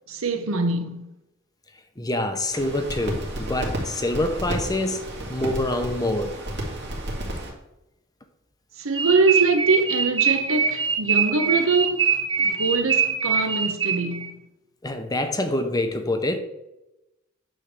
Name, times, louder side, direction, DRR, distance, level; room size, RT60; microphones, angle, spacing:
voice 1, 0.1-1.1 8.8-12.1 12.4-14.4, right 3 dB, 70° right, 0.9 m, -23 dB
voice 2, 2.0-6.4 14.8-16.4, left 1 dB, 20° left, 0.8 m, -26 dB
sound 1, 2.5-7.5, right 1 dB, 55° right, 2.3 m, -32 dB
sound 2, 9.0-14.3, right 6 dB, 20° right, 0.9 m, -23 dB
9.9 x 3.4 x 6.8 m
head